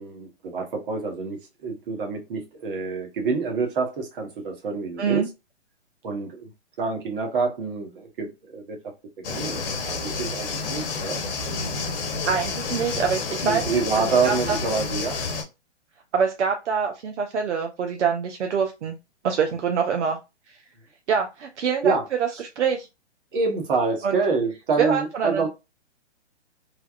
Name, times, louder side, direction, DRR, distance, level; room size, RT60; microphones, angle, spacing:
voice 1, 0.0-5.3 6.0-6.5 6.8-8.9 9.3-11.2 13.4-15.2 21.8-22.1 22.3-22.4 23.3-25.5, right 4 dB, 50° right, 1.3 m, -27 dB
sound 1, 9.2-15.4, left 4 dB, 55° left, 1.0 m, -29 dB
voice 2, 12.3-13.6 14.1-14.6 16.1-18.9 19.2-20.2 21.1-21.9 22.4-22.9 24.0-24.2 24.8-25.5, right 6 dB, 70° right, 0.7 m, -25 dB
3.3 x 2.4 x 2.4 m
hypercardioid pair, 140°, 35 cm